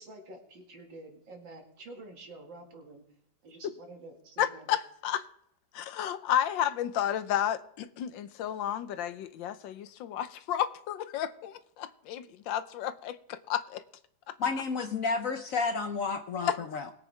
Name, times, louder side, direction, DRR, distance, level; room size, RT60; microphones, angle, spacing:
voice 1, 0.0-3.0 3.4-4.7, right 2 dB, 75° right, 2.8 m, -48 dB
voice 2, 4.4-5.2 5.7-13.8 16.4-16.6, left 10 dB, 85° left, 1.4 m, -32 dB
voice 3, 14.4-16.9, left 4 dB, 60° left, 0.9 m, -31 dB
21.0 x 8.4 x 3.4 m
omnidirectional pair, 2.0 m